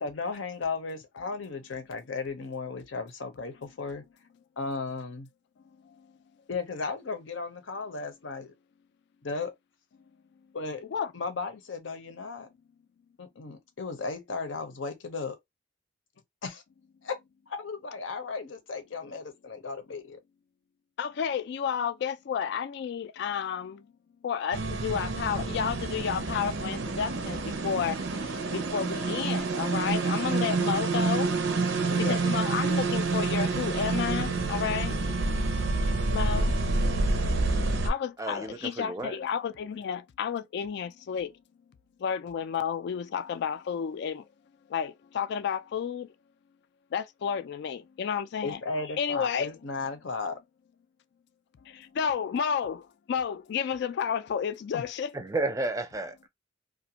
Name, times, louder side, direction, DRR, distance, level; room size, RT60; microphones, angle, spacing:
voice 1, 0.0-4.0 4.6-5.3 6.5-8.5 9.2-9.5 10.5-10.8 11.1-12.5 13.2-15.4 16.4-16.6 17.0-17.1 17.5-20.2 31.9-32.3 36.8-36.9 48.4-50.4 54.7-54.8, left 4 dB, 80° left, 0.7 m, -35 dB
voice 2, 21.0-23.8 24.2-28.0 28.5-31.3 32.1-34.9 36.1-36.5 37.8-41.3 42.0-44.2 44.7-46.1 46.9-48.6 49.0-49.5 52.0-52.8 53.1-55.1, left 7 dB, 65° left, 0.3 m, -31 dB
sound 1, 24.5-37.9, right 3 dB, 80° right, 0.5 m, -28 dB
voice 3, 38.2-39.2 55.1-56.3, right 2 dB, 20° right, 0.4 m, -32 dB
2.4 x 2.2 x 2.8 m
head